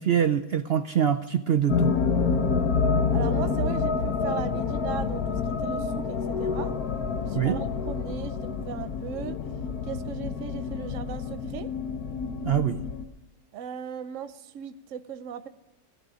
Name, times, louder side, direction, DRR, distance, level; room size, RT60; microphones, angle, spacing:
voice 1, 0.0-1.9 7.4-7.6 12.4-12.8, right 9 dB, 75° right, 9 dB, 0.5 m, -24 dB
sound 1, 1.7-13.0, left 5 dB, 70° left, 1.5 m, -28 dB
voice 2, 3.1-6.7 7.2-9.4 9.8-11.7 13.5-15.5, right 8 dB, 55° right, 11 dB, 1.1 m, -37 dB
16.5 x 12.0 x 6.3 m, 1.0 s
omnidirectional pair, 1.8 m